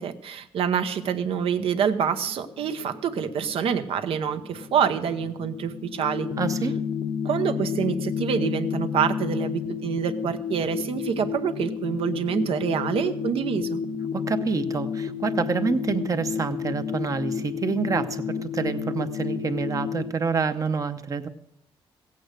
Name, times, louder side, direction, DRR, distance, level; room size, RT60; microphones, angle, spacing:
voice 1, 0.0-6.3 7.2-13.8, right 7 dB, 70° right, 10 dB, 0.9 m, -26 dB
sound 1, 1.1-20.1, left 7 dB, 80° left, 0.9 m, -31 dB
voice 2, 6.4-6.8 14.1-21.3, right 5 dB, 35° right, 9 dB, 0.8 m, -27 dB
16.0 x 8.5 x 6.5 m, 0.82 s
cardioid pair, 140°, 10 cm